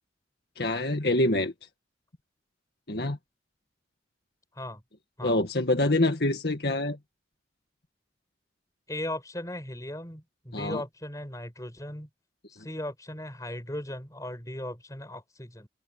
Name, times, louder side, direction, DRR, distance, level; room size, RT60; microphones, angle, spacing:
voice 1, 0.6-1.5 2.9-3.2 5.2-7.0 10.5-10.8, left 2 dB, 65° left, 1.9 m, -25 dB
voice 2, 8.9-12.1 12.5-15.7, left 1 dB, 20° left, 5.5 m, -37 dB
open air
head